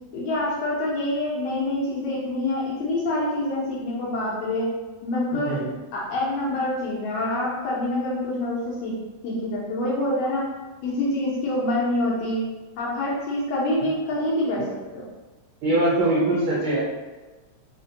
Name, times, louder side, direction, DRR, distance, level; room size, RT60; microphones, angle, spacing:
voice 1, 0.1-4.7 5.0-5.6 5.9-8.9 9.2-10.4 10.8-12.4 12.8-14.6 14.9-15.0, left 1 dB, 70° left, -6 dB, 1.7 m, -26 dB
voice 2, 5.3-5.7 13.8-13.9 15.6-16.8, right 1 dB, 80° right, -7 dB, 1.2 m, -22 dB
5.0 x 2.2 x 2.7 m, 1.2 s
omnidirectional pair, 3.3 m